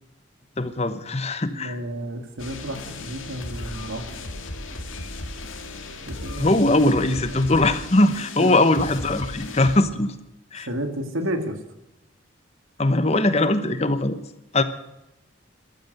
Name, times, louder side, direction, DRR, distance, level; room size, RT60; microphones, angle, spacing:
voice 1, 0.6-1.8 6.4-10.1 10.5-10.7 12.8-14.2 14.5-14.6, left 2 dB, 30° left, 12 dB, 0.9 m, -21 dB
voice 2, 1.5-4.1 6.1-6.5 7.1-7.4 8.4-8.7 10.7-11.6, right 1 dB, 90° right, 6 dB, 2.1 m, -31 dB
sound 1, 2.4-9.8, left 2 dB, 80° left, 2.2 m, -36 dB
14.0 x 13.5 x 6.6 m, 0.90 s
head